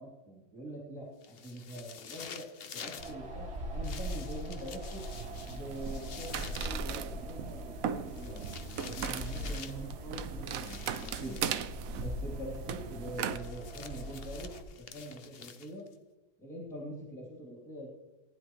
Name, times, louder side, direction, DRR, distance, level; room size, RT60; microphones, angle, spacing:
voice 1, 0.0-5.0 5.5-8.5 8.8-11.4 11.9-14.5 14.8-15.8 16.4-17.9, right 1 dB, ahead, -5 dB, 2.9 m, -44 dB
sound 1, 1.2-3.2 3.8-6.8 8.1-9.9 10.5-11.6 13.1-15.9, left 7 dB, 55° left, 0.7 m, -48 dB
Wind, 3.0-14.6, equal, 40° right, 1.8 m, -41 dB
sound 2, 5.0-13.4, right 8 dB, 65° right, 1.0 m, -39 dB
19.0 x 10.5 x 3.2 m, 1.0 s
omnidirectional pair, 1.7 m